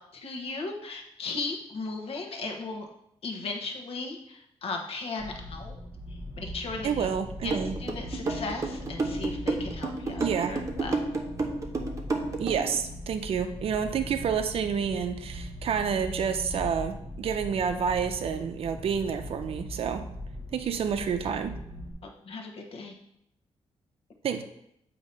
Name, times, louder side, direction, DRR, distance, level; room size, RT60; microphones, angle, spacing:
voice 1, 0.1-2.9 3.2-5.8 6.1-7.1 7.4-11.0 22.0-22.9, left 3 dB, 60° left, 2 dB, 1.1 m, -36 dB
sound 1, 5.2-21.9, equal, 10° left, 1.0 m, -40 dB
voice 2, 6.8-7.7 10.2-10.5 12.4-20.0 20.5-21.5 24.2-24.4, right 7 dB, 55° right, 8 dB, 0.5 m, -29 dB
sound 2, 7.5-12.8, right 3 dB, 30° right, 0.8 m, -30 dB
8.1 x 2.9 x 5.3 m, 0.76 s
wide cardioid pair, 155°, 11 cm